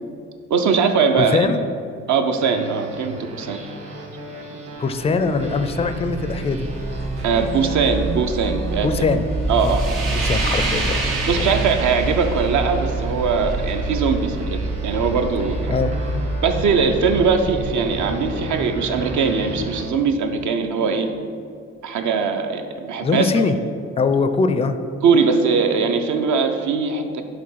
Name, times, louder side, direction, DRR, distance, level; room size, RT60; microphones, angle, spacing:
voice 1, 0.5-1.5 2.1-3.6 7.2-8.9 9.5-9.9 11.3-15.7 16.4-21.1 21.8-23.4 25.0-27.2, right 5 dB, 60° right, 6 dB, 0.7 m, -21 dB
voice 2, 1.2-1.7 4.8-6.7 8.8-9.2 9.6-9.7 10.1-10.9 11.4-11.5 15.7-15.9 23.0-23.5 24.0-24.8, left 4 dB, 20° left, 10 dB, 0.4 m, -21 dB
sound 1, 2.3-19.8, right 2 dB, 45° right, 1.4 m, -33 dB
sound 2, 5.1-19.1, right 2 dB, 80° right, 1.1 m, -27 dB
5.1 x 3.7 x 5.6 m, 2.4 s
supercardioid pair, 60°, 33 cm